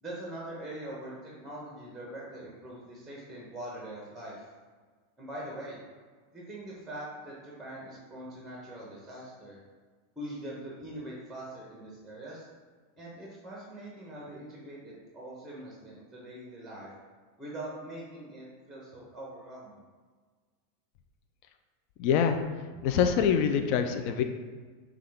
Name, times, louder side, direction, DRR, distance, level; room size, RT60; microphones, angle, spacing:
voice 1, 0.0-4.4 5.2-5.8 6.3-9.6 10.2-12.5 13.0-16.9 17.4-19.8, right 1 dB, 5° right, -5 dB, 1.0 m, -42 dB
voice 2, 22.0-22.4 22.8-24.2, left 7 dB, 55° left, 7 dB, 0.3 m, -25 dB
5.3 x 2.3 x 3.4 m, 1.5 s
hypercardioid pair, 120°, 0 cm